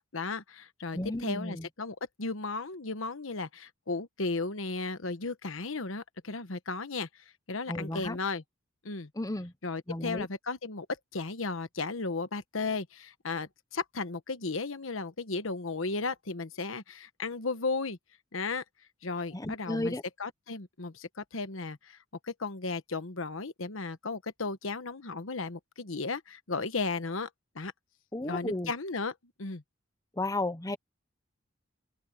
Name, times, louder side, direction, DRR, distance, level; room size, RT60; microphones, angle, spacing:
voice 1, 0.0-7.1 7.5-8.4 8.8-9.1 9.6-10.9 11.1-18.0 18.3-18.6 19.0-22.0 22.2-27.3 27.5-27.7 28.2-29.6, left 3 dB, 75° left, 1.2 m, -35 dB
voice 2, 0.9-1.7 7.7-8.2 9.1-9.5 9.9-10.3 19.3-20.0 28.1-28.7 30.2-30.8, left 1 dB, 15° left, 1.0 m, -33 dB
open air
head